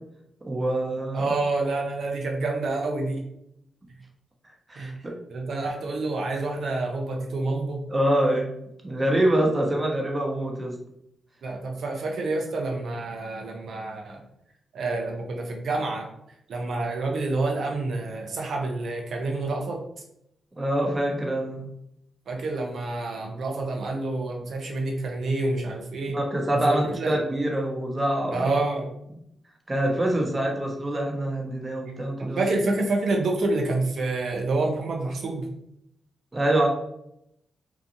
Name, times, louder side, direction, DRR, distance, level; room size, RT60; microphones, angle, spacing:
voice 1, 0.5-1.3 4.7-5.1 7.9-8.5 8.8-10.7 20.6-21.7 26.1-28.4 29.7-32.4 36.3-36.7, right 1 dB, 30° right, 0 dB, 0.9 m, -25 dB
voice 2, 1.1-3.2 4.8-4.9 5.3-7.8 11.4-14.2 14.7-16.1 16.5-19.8 22.3-26.2 26.5-27.2 28.3-28.9 32.3-35.5, right 2 dB, 70° right, 1 dB, 0.6 m, -28 dB
2.8 x 2.4 x 2.6 m, 0.77 s
supercardioid pair, 45°, 0 cm